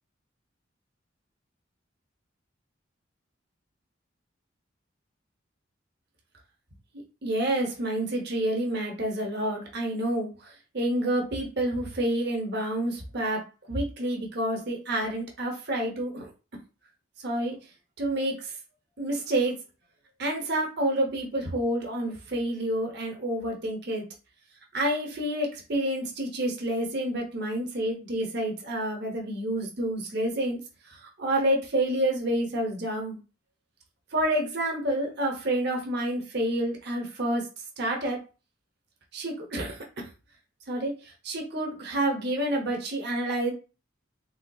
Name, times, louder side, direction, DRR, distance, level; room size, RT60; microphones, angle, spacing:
voice 1, 7.2-13.4 13.7-16.3 17.2-17.6 18.0-18.5 19.0-19.6 20.2-24.0 24.7-30.6 30.9-33.2 34.1-37.5 37.8-38.2 39.1-40.1 40.7-40.9 41.2-43.5, right 1 dB, 55° right, 1 dB, 0.8 m, -28 dB
3.4 x 2.6 x 2.3 m, 0.32 s
head